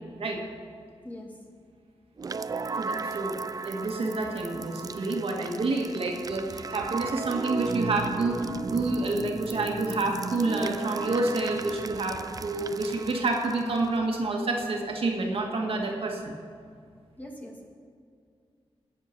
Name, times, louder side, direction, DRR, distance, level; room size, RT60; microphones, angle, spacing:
sound 1, 2.2-14.1, right 4 dB, 35° right, 0.4 m, -36 dB
voice 1, 2.8-3.4 3.7-16.3, right 2 dB, 65° right, 1 dB, 1.8 m, -28 dB
voice 2, 17.2-17.7, left 1 dB, 15° left, 0 dB, 1.9 m, -41 dB
19.5 x 7.1 x 5.9 m, 2.2 s
wide cardioid pair, 135°, 10 cm